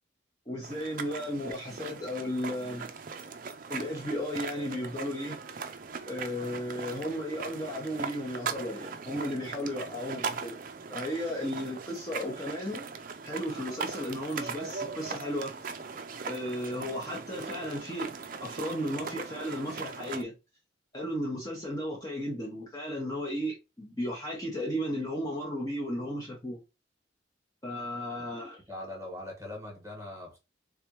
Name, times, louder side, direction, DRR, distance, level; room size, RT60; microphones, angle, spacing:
voice 1, 0.5-2.9 3.7-5.4 6.1-10.6 10.9-15.5 16.3-18.1 18.4-20.3 20.9-26.6 27.6-28.6, equal, 20° left, 0.9 m, -34 dB
sound 1, 0.6-20.2, right 5 dB, 45° right, 0.5 m, -39 dB
voice 2, 28.7-30.4, left 1 dB, 15° right, 1.4 m, -41 dB
3.6 x 3.3 x 2.9 m
head